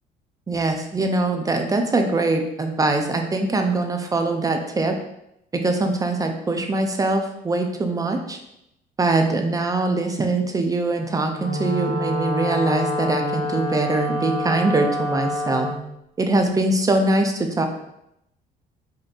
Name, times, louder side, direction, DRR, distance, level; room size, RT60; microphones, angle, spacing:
voice 1, 0.5-5.0 5.5-8.4 9.0-15.7 16.2-17.7, right 2 dB, 20° right, 4 dB, 0.4 m, -22 dB
Wind instrument woodwind instrument, 11.3-15.8, left 1 dB, 40° left, 1.0 m, -27 dB
5.1 x 2.6 x 2.4 m, 0.81 s
cardioid pair, 110°, 17 cm